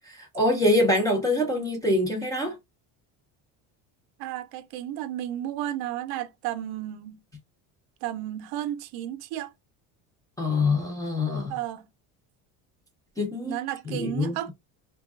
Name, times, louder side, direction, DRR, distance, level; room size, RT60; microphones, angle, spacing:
voice 1, 0.0-2.6 10.4-11.6 13.2-13.6 13.9-14.4, left 1 dB, 10° left, 0.4 m, -25 dB
voice 2, 4.2-7.2 8.0-9.5 11.5-11.9 13.5-14.5, right 12 dB, 65° right, 0.5 m, -33 dB
3.3 x 2.2 x 2.3 m
cardioid pair, 150°, 39 cm